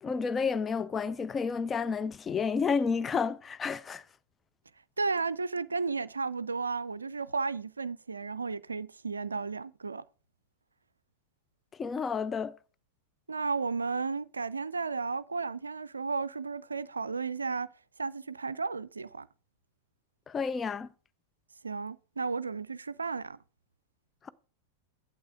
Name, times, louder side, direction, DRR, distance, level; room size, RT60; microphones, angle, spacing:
voice 1, 0.0-4.0 11.8-12.6 20.3-20.9 24.2-24.3, left 5 dB, 20° left, 0.4 m, -30 dB
voice 2, 5.0-10.0 13.3-17.7 18.0-19.3 21.6-23.4, right 4 dB, 75° right, 0.4 m, -33 dB
8.6 x 8.1 x 3.6 m
figure-of-eight pair, 90°, 0 cm